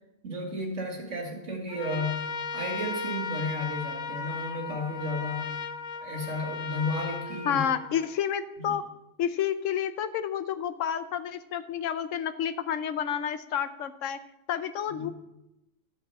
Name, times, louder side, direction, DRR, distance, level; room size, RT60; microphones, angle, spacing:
voice 1, 0.2-5.6 6.0-7.6 8.6-8.8 15.0-15.1, left 1 dB, 80° right, 1 dB, 2.3 m, -33 dB
Trumpet, 1.7-8.2, left 5 dB, 50° left, 0.5 m, -36 dB
voice 2, 7.4-8.8 9.2-14.2 14.5-15.1, left 9 dB, 90° left, 11 dB, 1.0 m, -30 dB
12.5 x 4.6 x 6.8 m, 0.89 s
omnidirectional pair, 1.3 m